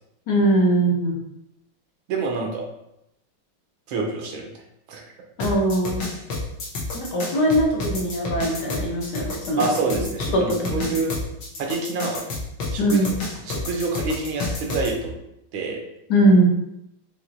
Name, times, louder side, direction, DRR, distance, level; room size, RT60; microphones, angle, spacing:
voice 1, 0.3-1.2 5.4-6.1 6.9-9.7 10.3-11.0 12.8-13.1 16.1-16.5, right 1 dB, 65° left, -1 dB, 1.3 m, -21 dB
voice 2, 2.1-2.6 3.9-4.5 4.9-5.0 9.6-11.2 11.6-12.2 12.7-13.0 13.4-15.1 15.5-15.8, right 3 dB, 85° right, 1 dB, 1.6 m, -27 dB
sound 1, 5.4-14.9, left 3 dB, 85° left, 1.9 m, -29 dB
5.8 x 3.0 x 2.6 m, 0.82 s
omnidirectional pair, 2.2 m